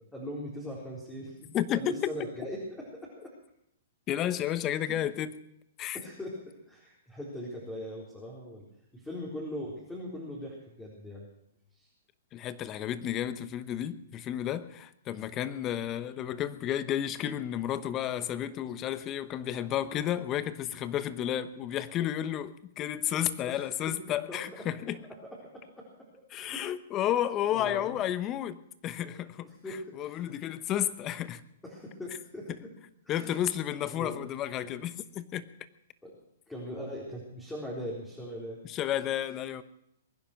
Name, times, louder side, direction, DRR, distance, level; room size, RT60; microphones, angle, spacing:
voice 1, 0.1-3.3 5.9-8.6 8.9-11.3 11.7-11.9 23.5-24.4 24.9-25.0 25.2-26.6 27.5-28.0 29.0-29.1 29.4-30.2 31.6-32.7 33.0-33.3 33.9-34.2 36.0-36.1 36.5-38.6, equal, 5° left, 4.1 m, -41 dB
voice 2, 1.5-2.1 4.1-5.3 5.8-6.0 12.3-25.0 26.3-29.5 29.9-31.4 33.1-35.5 38.6-39.6, left 11 dB, 25° left, 1.0 m, -32 dB
22.5 x 10.0 x 6.1 m
hypercardioid pair, 145°, 0 cm